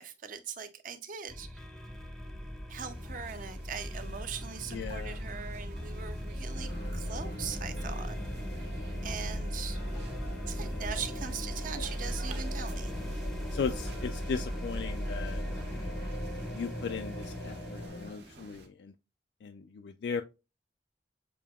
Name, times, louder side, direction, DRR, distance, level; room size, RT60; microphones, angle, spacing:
voice 1, 0.0-1.6 2.7-8.2 9.0-9.8 10.5-12.9, right 7 dB, 50° right, 0.6 m, -41 dB
sound 1, 1.3-17.9, equal, ahead, 0.6 m, -37 dB
sound 2, 2.9-18.7, right 2 dB, 65° right, 1.0 m, -53 dB
voice 2, 4.7-5.2 13.5-15.4 16.5-18.9 19.4-20.2, left 6 dB, 70° left, 0.3 m, -37 dB
sound 3, 6.5-18.1, left 1 dB, 85° left, 0.9 m, -44 dB
6.9 x 2.8 x 2.3 m
head